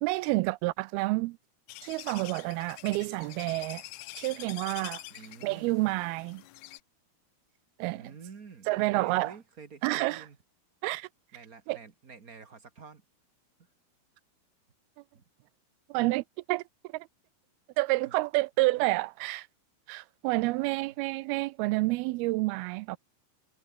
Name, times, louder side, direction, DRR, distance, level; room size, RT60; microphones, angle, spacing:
voice 1, 0.0-1.4 1.8-3.8 4.2-5.0 5.4-6.4 7.8-8.1 8.7-9.3 9.8-10.3 10.8-11.1 11.7-11.8 15.9-16.6 16.9-17.1 17.8-19.5 19.9-23.0, right 22 dB, 85° right, 2.4 m, -29 dB
sound 1, 1.7-6.8, left 16 dB, 85° left, 1.7 m, -46 dB
voice 2, 5.1-5.7 7.9-10.4 11.3-13.0 15.1-15.2 18.0-18.1 18.7-18.9 20.6-20.9, right 5 dB, 50° right, 1.0 m, -49 dB
omnidirectional pair, 4.5 m